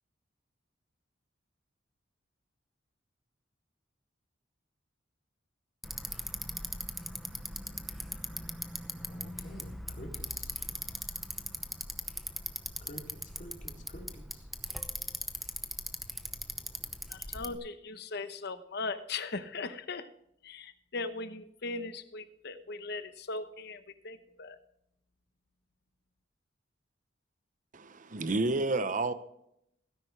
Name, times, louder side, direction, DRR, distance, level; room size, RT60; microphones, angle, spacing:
Bicycle, 5.8-17.6, equal, ahead, 0.8 m, -40 dB
voice 1, 9.0-10.5 12.8-14.5, equal, 45° left, 3.0 m, -48 dB
voice 2, 17.1-20.1 20.4-24.6, left 3 dB, 60° left, 1.0 m, -39 dB
voice 3, 27.7-29.1, right 2 dB, 45° right, 0.9 m, -30 dB
17.0 x 10.5 x 3.3 m
head